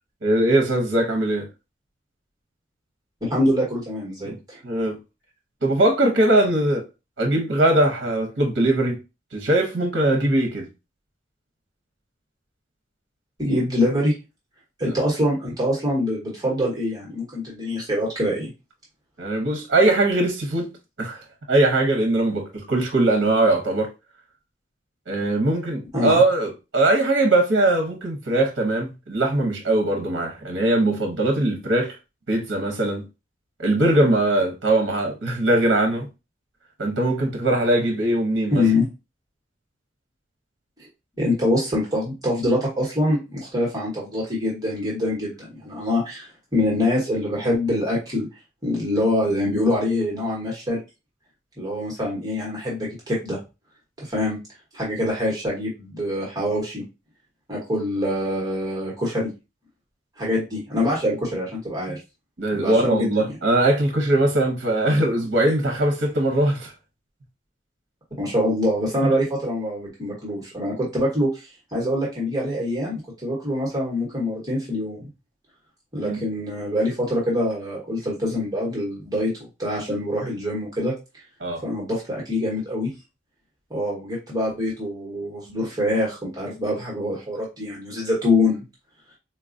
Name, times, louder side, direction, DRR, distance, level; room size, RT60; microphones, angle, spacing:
voice 1, 0.2-1.5 4.2-4.4 4.6-5.0 5.6-6.8 7.2-9.0 9.3-10.7 14.8-14.9 19.2-20.7 21.0-21.2 21.5-23.9 25.1-32.0 32.3-33.0 33.6-36.1 36.8-38.6 62.4-66.7 69.0-69.1 76.0-76.2 81.4-81.6, right 1 dB, 65° right, 0.8 m, -21 dB
voice 2, 3.2-4.6 13.4-14.1 14.8-18.5 25.9-26.2 38.5-38.9 41.2-48.3 48.6-50.8 51.6-53.4 54.0-54.4 54.7-56.8 57.5-59.3 60.2-62.0 62.5-63.1 68.2-75.0 75.9-79.3 79.6-80.9 81.6-82.9 83.7-88.6, left 1 dB, 20° right, 1.1 m, -24 dB
4.1 x 2.3 x 2.5 m
head